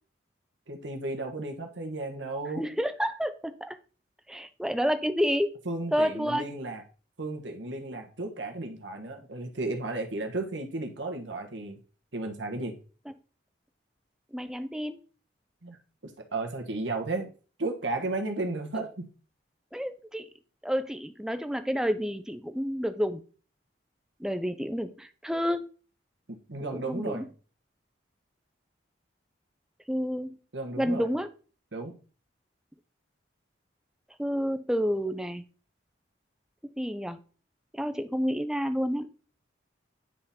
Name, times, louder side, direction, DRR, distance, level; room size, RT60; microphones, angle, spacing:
voice 1, 0.7-2.6 5.6-6.8 7.2-11.8 12.1-12.7 15.6-15.8 16.3-17.3 17.6-19.1 26.3-27.2 30.5-31.1 31.7-32.0, right 2 dB, 70° right, 4 dB, 1.3 m, -34 dB
voice 2, 2.6-3.8 4.3-5.5 5.9-6.5 14.3-15.0 18.7-18.9 19.7-20.3 20.6-23.2 24.2-25.7 26.7-27.3 29.9-30.4 30.8-31.3 34.2-35.4 36.8-37.2 37.7-39.1, equal, 5° right, 9 dB, 0.5 m, -29 dB
9.9 x 3.8 x 4.2 m, 0.38 s
head